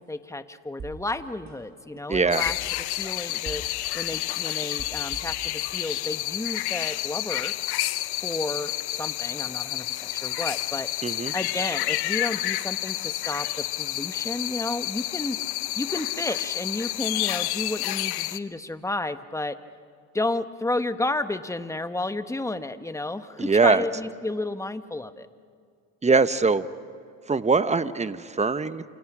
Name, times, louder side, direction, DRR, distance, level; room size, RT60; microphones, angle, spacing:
voice 1, 0.0-7.5 8.2-15.4 15.7-19.6 20.1-25.3, left 2 dB, 5° left, 10 dB, 1.1 m, -32 dB
sound 1, 0.8-1.1 1.5-3.0 3.3-3.8 4.1-5.6 6.0-6.1, right 5 dB, 45° right, 6.6 m, -41 dB
voice 2, 2.1-2.4 11.0-11.3 23.4-23.8 26.0-26.6 27.3-28.8, right 4 dB, 15° right, 12 dB, 1.0 m, -22 dB
sound 2, 2.3-18.4, left 16 dB, 70° left, 0.9 m, -30 dB
29.0 x 27.5 x 6.1 m, 2.2 s
supercardioid pair, 85°, 40 cm